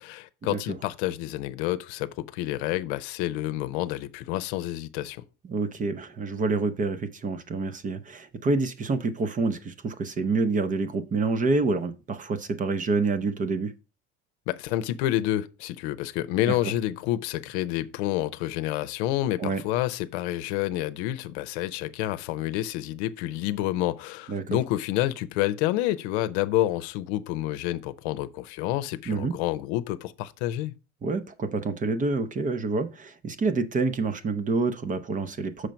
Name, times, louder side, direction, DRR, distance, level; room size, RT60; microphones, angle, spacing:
voice 1, 0.0-5.2 14.5-30.7, left 14 dB, 90° left, 0.7 m, -29 dB
voice 2, 5.4-13.7 16.5-16.7 19.4-19.6 24.3-24.6 29.1-29.3 31.0-35.7, right 3 dB, 25° right, 0.7 m, -27 dB
6.5 x 4.5 x 5.2 m
cardioid pair, 130°, 32 cm